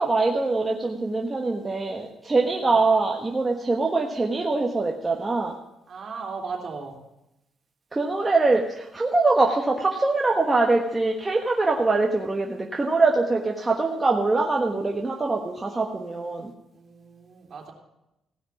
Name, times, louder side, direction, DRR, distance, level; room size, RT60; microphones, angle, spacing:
voice 1, 0.0-5.5 7.9-16.5, right 3 dB, 20° right, 0 dB, 1.2 m, -23 dB
voice 2, 5.9-6.9 16.7-17.7, right 4 dB, 50° right, 0 dB, 3.1 m, -36 dB
16.0 x 5.9 x 7.2 m, 0.89 s
cardioid pair, 90°, 0 cm